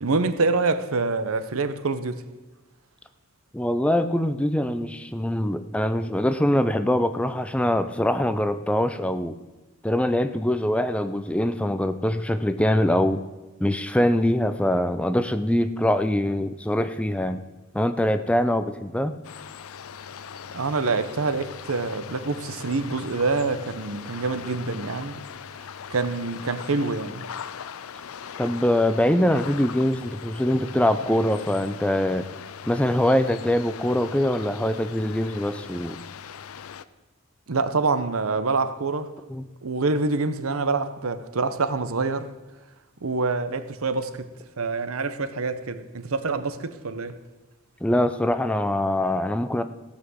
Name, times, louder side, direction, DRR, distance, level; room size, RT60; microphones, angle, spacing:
voice 1, 0.0-2.2 20.5-25.1 25.9-27.3 37.5-39.1 39.6-42.3 43.0-44.3 44.6-47.2, right 3 dB, 80° right, 0.8 m, -26 dB
voice 2, 3.5-9.4 9.8-13.2 13.6-17.4 17.7-19.1 28.4-32.3 32.7-36.0 39.3-39.4 47.8-49.6, left 1 dB, 5° left, 0.4 m, -23 dB
sound 1, 19.2-36.8, left 7 dB, 90° left, 0.5 m, -40 dB
15.5 x 5.9 x 7.9 m
head